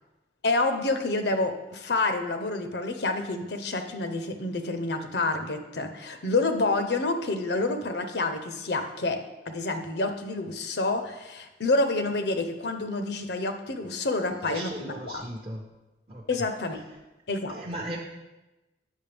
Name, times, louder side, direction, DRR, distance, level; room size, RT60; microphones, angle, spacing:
voice 1, 0.4-9.2 9.5-15.2 16.3-16.8 17.3-17.6, left 2 dB, 70° left, 7 dB, 0.7 m, -28 dB
voice 2, 14.4-15.6 16.1-16.5 16.7-17.0 17.5-18.0, right 1 dB, 30° right, -3 dB, 0.7 m, -37 dB
8.5 x 6.5 x 3.4 m, 1.0 s
head